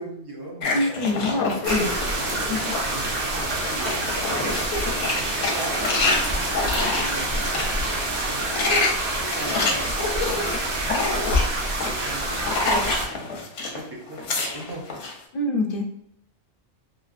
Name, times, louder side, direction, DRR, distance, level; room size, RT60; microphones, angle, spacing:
voice 1, 0.0-2.3 2.9-4.6 5.0-8.6 9.0-10.8 11.8-14.8, right 1 dB, 35° right, -1 dB, 0.4 m, -39 dB
sound 1, 0.6-2.9 3.3-7.7 8.3-13.8 14.1-15.1, left 3 dB, 90° left, 1.0 m, -27 dB
voice 2, 0.7-1.9 2.5-2.6 15.3-15.8, left 2 dB, 60° left, 3 dB, 0.6 m, -25 dB
sound 2, 1.6-13.1, right 1 dB, 55° right, 0.9 m, -27 dB
3.2 x 2.6 x 2.4 m, 0.77 s
omnidirectional pair, 1.2 m